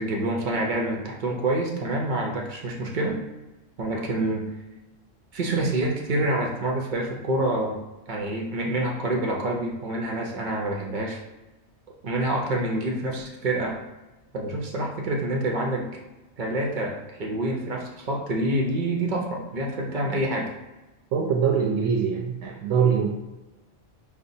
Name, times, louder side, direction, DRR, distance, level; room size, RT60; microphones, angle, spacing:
voice 1, 0.0-3.2 3.8-4.5 5.3-7.8 8.1-11.2 12.0-13.8 14.3-16.0 16.4-20.5, right 1 dB, 50° right, -1 dB, 0.6 m, -27 dB
voice 2, 21.1-23.1, right 6 dB, 80° right, 0 dB, 0.9 m, -23 dB
5.4 x 2.1 x 2.6 m, 1.1 s
omnidirectional pair, 1.3 m